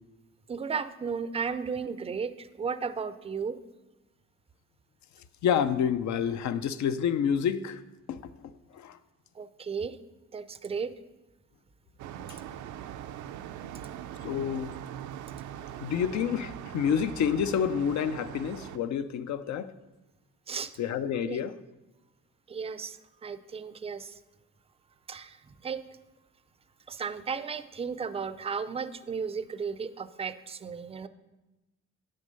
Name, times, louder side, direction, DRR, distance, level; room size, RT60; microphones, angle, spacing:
voice 1, 0.5-3.6 9.4-10.0 10.3-10.9 20.5-20.7 21.2-21.4 22.5-24.1 25.1-25.8 26.9-31.1, right 6 dB, 20° right, 0.4 m, -34 dB
voice 2, 5.4-7.8 8.1-8.2 8.7-9.0 14.2-14.7 15.8-19.7 20.8-21.6, left 8 dB, 70° left, 0.6 m, -28 dB
sound 1, 12.0-18.8, right 10 dB, 75° right, 0.5 m, -41 dB
9.4 x 6.5 x 5.3 m
cardioid pair, 90°, 30 cm